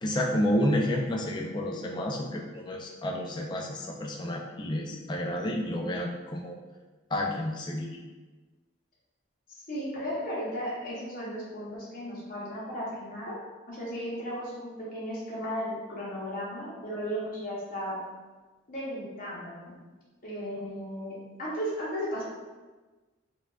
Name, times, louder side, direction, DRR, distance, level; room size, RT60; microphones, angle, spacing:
voice 1, 0.0-6.5 7.1-7.9, left 1 dB, 20° left, 1 dB, 0.3 m, -30 dB
voice 2, 9.5-13.4 13.7-18.0 18.7-19.7 20.2-22.2, equal, 40° left, -7 dB, 0.7 m, -35 dB
4.5 x 2.3 x 2.3 m, 1.3 s
head